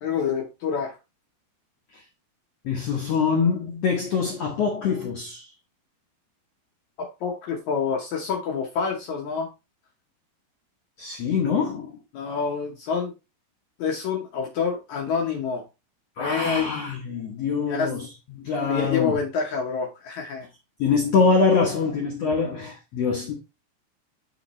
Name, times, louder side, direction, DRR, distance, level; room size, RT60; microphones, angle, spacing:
voice 1, 0.0-1.0 7.0-9.5 12.1-13.1 13.8-15.6 16.2-16.7 17.7-17.9 18.7-20.5, left 6 dB, 70° left, 1.8 m, -27 dB
voice 2, 2.6-5.5 11.0-11.9 16.2-19.1 20.8-23.3, left 5 dB, 90° left, 1.3 m, -24 dB
7.0 x 5.1 x 3.1 m
omnidirectional pair, 4.4 m